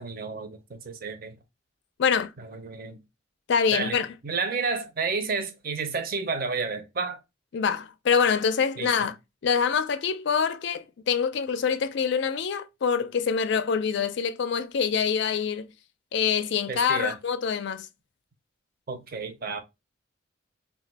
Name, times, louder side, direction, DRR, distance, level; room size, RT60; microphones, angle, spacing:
voice 1, 0.0-1.4 2.4-3.0 3.7-4.0 4.2-7.2 8.8-9.1 16.7-17.2 18.9-19.6, right 4 dB, 45° right, 0.6 m, -31 dB
voice 2, 2.0-2.3 3.5-4.1 7.5-9.2 9.4-15.7 16.1-17.9, left 6 dB, 60° left, 0.4 m, -25 dB
2.5 x 2.3 x 4.1 m
head